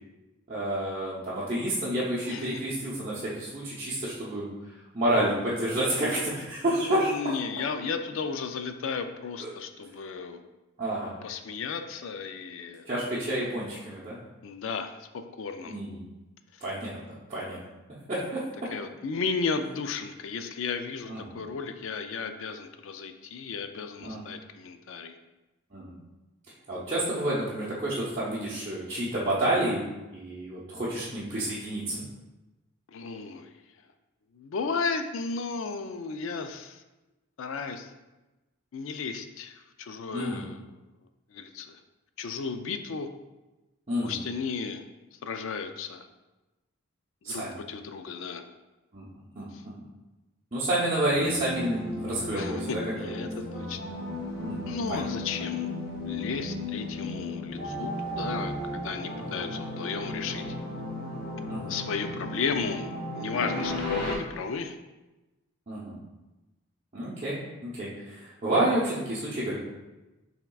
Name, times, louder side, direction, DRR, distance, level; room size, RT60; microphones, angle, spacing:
voice 1, 0.5-4.5 4.9-7.3 9.4-9.5 10.8-11.1 12.9-14.2 15.7-16.0 16.6-17.0 17.3-17.6 18.1-18.7 21.1-21.4 24.0-24.2 25.7-26.0 26.7-29.8 30.1-32.0 40.1-40.4 43.9-44.2 47.2-47.6 48.9-49.1 49.3-49.7 50.5-53.2 54.4-55.0 59.2-59.4 61.5-61.7 65.7-66.0 66.9-67.4 67.6-69.6, right 1 dB, 30° right, -9 dB, 0.7 m, -29 dB
voice 2, 6.8-10.4 11.2-12.9 14.4-15.8 18.7-25.2 32.9-33.5 34.3-36.8 37.4-37.9 38.7-40.6 41.3-41.8 42.2-43.1 44.0-44.8 45.1-46.0 47.2-47.4 47.7-48.4 52.3-53.9 54.7-55.7 56.0-60.4 61.7-64.8, left 5 dB, 65° left, 8 dB, 0.4 m, -34 dB
sound 1, 51.1-64.2, left 1 dB, 45° left, 0.8 m, -35 dB
5.7 x 3.5 x 2.3 m, 1.1 s
head